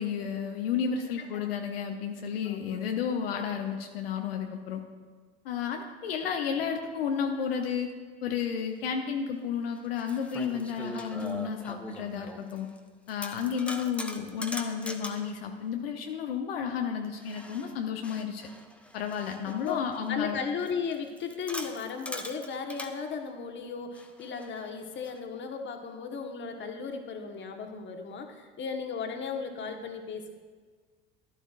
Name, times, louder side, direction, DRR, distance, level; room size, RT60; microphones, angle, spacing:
voice 1, 0.0-4.8 5.4-7.9 8.2-12.7 13.1-18.5 18.9-20.4, left 7 dB, 80° left, 3 dB, 0.8 m, -32 dB
voice 2, 2.4-2.8 19.4-19.8 20.1-30.3, left 5 dB, 40° left, 4 dB, 1.3 m, -36 dB
sound 1, 8.8-8.9 9.7-12.8 13.1-15.3 17.2-20.1 20.6-22.9 23.9-25.2, left 1 dB, 5° left, 0.8 m, -42 dB
11.5 x 11.5 x 2.4 m, 1.5 s
hypercardioid pair, 70°, 30 cm